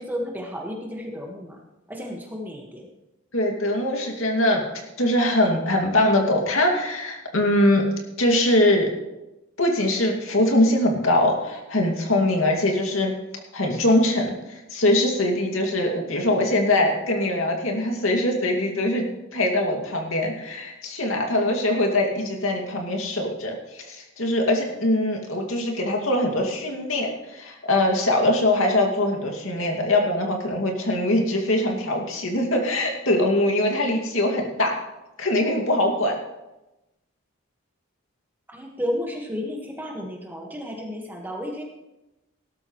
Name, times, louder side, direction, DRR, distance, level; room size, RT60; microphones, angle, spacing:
voice 1, 0.0-1.6 1.9-2.9 38.5-41.6, equal, 10° right, 0 dB, 1.7 m, -32 dB
voice 2, 3.3-4.7 5.0-7.8 8.2-8.9 9.6-13.1 13.5-34.8 35.2-36.2, left 1 dB, 70° left, 1 dB, 2.4 m, -22 dB
17.5 x 13.0 x 3.2 m, 0.98 s
head